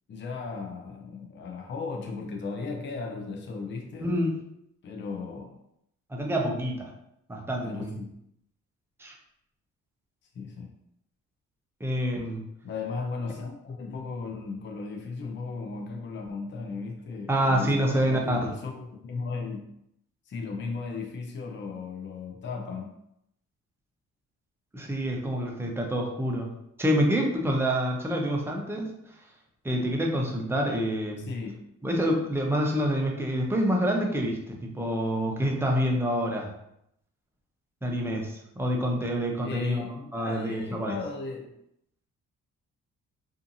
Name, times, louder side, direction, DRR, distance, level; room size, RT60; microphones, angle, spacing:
voice 1, 0.1-4.1 4.8-5.6 7.6-8.2 10.3-10.7 12.4-19.7 20.3-22.9 31.2-31.7 39.4-41.5, left 4 dB, 40° left, 2 dB, 0.5 m, -36 dB
voice 2, 4.0-4.4 6.1-6.9 7.3-7.9 9.0-9.1 11.8-12.4 17.3-18.5 24.7-26.5 26.8-28.9 29.6-31.3 31.8-36.5 37.8-39.9 40.1-40.9, equal, 10° right, 0 dB, 0.6 m, -27 dB
2.7 x 2.5 x 2.5 m, 0.78 s
cardioid pair, 90°, 30 cm